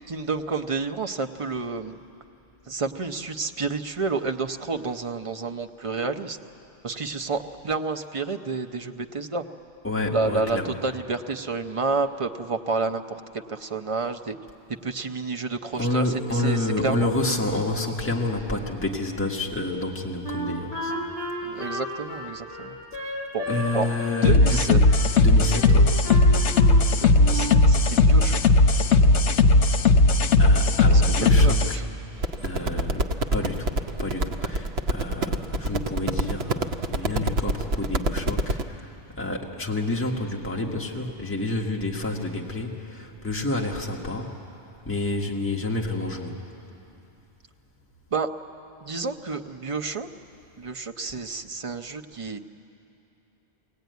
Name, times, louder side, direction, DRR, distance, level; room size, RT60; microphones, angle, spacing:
voice 1, 0.1-2.0 2.7-6.4 6.8-9.4 10.1-14.4 14.8-17.1 21.4-22.8 23.3-23.4 23.7-23.9 24.2-24.8 27.0-28.4 30.9-31.8 48.1-48.3 48.8-50.1 50.6-52.4, right 4 dB, 35° right, 6 dB, 0.7 m, -30 dB
voice 2, 9.8-10.7 15.7-20.9 23.5-24.8 25.2-26.0 30.4-31.8 32.4-33.7 34.0-44.3 44.8-46.4, left 2 dB, 10° left, -1 dB, 1.5 m, -29 dB
Wind instrument woodwind instrument, 20.2-23.7 24.0-25.1 25.6-26.8 27.2-27.6, equal, 55° left, 4.2 m, -33 dB
sound 1, 24.2-31.7, left 2 dB, 80° left, 1.1 m, -17 dB
sound 2, 32.2-38.6, right 1 dB, 65° right, 1.0 m, -26 dB
23.5 x 17.5 x 9.3 m, 2.8 s
omnidirectional pair, 1.2 m